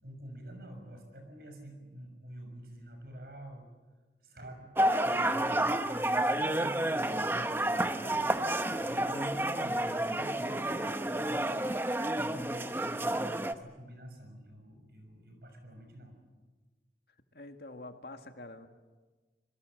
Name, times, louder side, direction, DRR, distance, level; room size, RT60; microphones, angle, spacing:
voice 1, 0.0-3.7 4.2-4.7 5.0-16.2, right 1 dB, 60° right, 5 dB, 6.5 m, -47 dB
sound 1, 4.8-13.5, right 1 dB, 10° right, 0.8 m, -30 dB
voice 2, 17.3-18.7, left 2 dB, 65° left, 6 dB, 1.8 m, -46 dB
26.5 x 22.0 x 7.8 m, 1.3 s
head